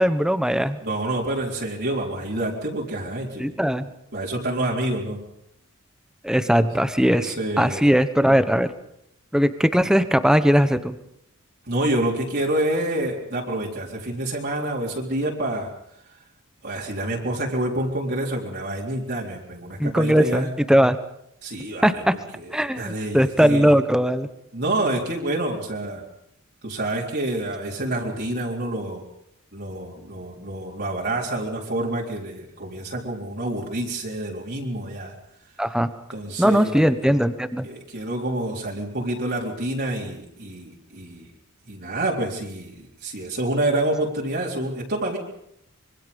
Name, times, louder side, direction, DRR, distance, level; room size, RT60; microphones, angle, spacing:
voice 1, 0.0-0.8 3.4-3.9 6.2-8.7 9.3-11.0 19.8-21.0 21.8-22.1 22.5-24.3 35.6-35.9 36.4-37.7, equal, 5° right, 11 dB, 1.1 m, -19 dB
voice 2, 0.8-3.6 4.1-5.2 6.6-6.7 7.1-7.8 11.7-15.7 16.6-20.5 21.4-22.0 22.3-23.7 24.5-26.0 26.6-29.0 29.5-35.1 36.1-37.0 37.6-41.3 41.7-45.2, right 1 dB, 50° right, -3 dB, 3.8 m, -28 dB
25.5 x 24.0 x 5.4 m, 0.76 s
head